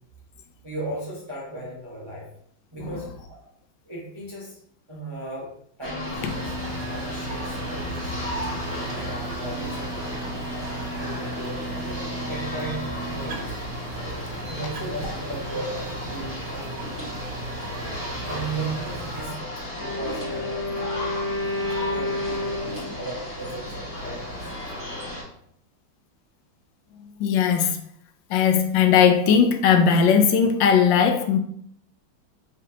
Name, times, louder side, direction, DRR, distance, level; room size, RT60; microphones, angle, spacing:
voice 1, 0.6-2.3 2.7-3.4 3.8-4.6 4.9-5.5 5.8-8.1 8.9-10.2 11.0-13.5 13.9-14.0 14.5-16.8 18.2-21.1 21.9-24.5, right 2 dB, 40° right, 0.3 m, -36 dB
sound 1, 5.8-25.2, left 1 dB, 5° right, 1.3 m, -34 dB
sound 2, 6.1-19.2, right 2 dB, 75° right, 1.4 m, -37 dB
Wind instrument woodwind instrument, 19.7-23.2, left 2 dB, 25° left, 0.7 m, -30 dB
voice 2, 27.2-27.8 28.3-31.4, left 7 dB, 75° left, 1.2 m, -18 dB
4.9 x 3.2 x 2.8 m
omnidirectional pair, 2.2 m